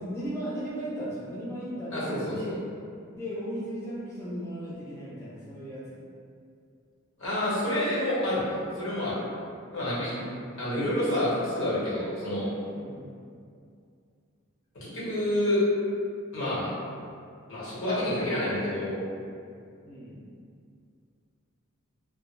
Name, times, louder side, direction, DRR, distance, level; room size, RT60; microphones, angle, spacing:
voice 1, 0.0-2.6 3.1-6.0 10.0-10.3 12.7-13.1 19.9-20.2, equal, 10° left, -9 dB, 0.3 m, -36 dB
voice 2, 1.9-2.5 7.2-9.2 9.7-10.1 10.6-12.5 14.7-15.6 16.3-16.7 17.5-19.0, left 1 dB, 65° left, -9 dB, 1.0 m, -28 dB
2.2 x 2.0 x 3.0 m, 2.3 s
head